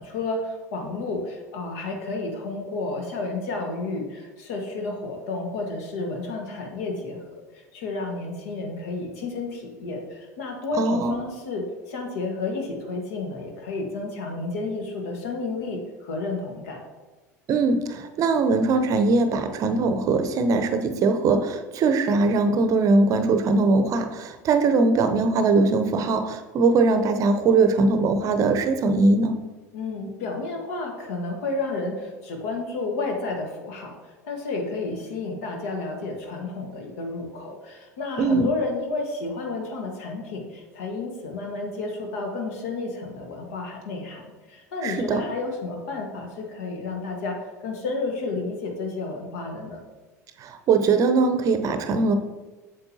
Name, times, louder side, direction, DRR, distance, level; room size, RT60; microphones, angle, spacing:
voice 1, 0.0-7.2 7.5-16.8 29.7-49.8, left 3 dB, 60° left, 2 dB, 1.5 m, -31 dB
voice 2, 10.8-11.2 17.5-29.3 38.2-38.5 44.8-45.2 50.4-52.1, right 3 dB, 40° right, 8 dB, 0.7 m, -21 dB
8.0 x 7.3 x 2.8 m, 1.2 s
figure-of-eight pair, 75°, 9 cm